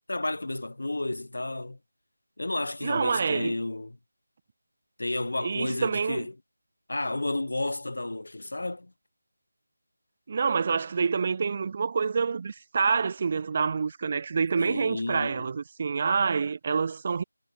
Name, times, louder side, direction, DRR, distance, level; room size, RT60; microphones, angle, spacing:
voice 1, 0.1-1.8 2.4-4.0 5.0-6.3 6.9-8.9 14.6-15.5, left 2 dB, 60° left, 0.8 m, -31 dB
voice 2, 2.8-3.6 5.4-6.3 10.3-17.2, right 5 dB, 30° right, 0.6 m, -27 dB
figure-of-eight pair, 165°, 0 cm